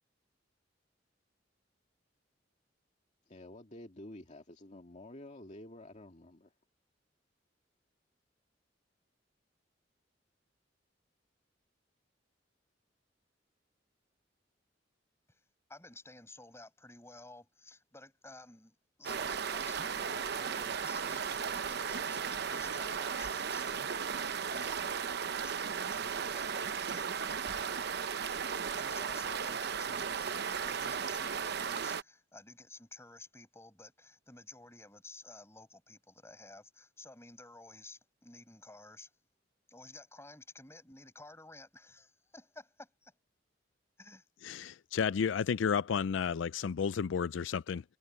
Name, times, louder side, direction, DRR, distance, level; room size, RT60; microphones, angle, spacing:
voice 1, 3.3-6.5, left 1 dB, 40° left, 2.2 m, -50 dB
voice 2, 15.7-25.1 25.4-25.6 25.9-27.1 28.5-39.1 39.7-43.1 44.0-44.2, left 2 dB, 15° left, 7.3 m, -53 dB
sound 1, 19.0-32.0, right 6 dB, 60° right, 0.8 m, -35 dB
voice 3, 44.4-47.8, left 6 dB, 90° left, 0.4 m, -32 dB
head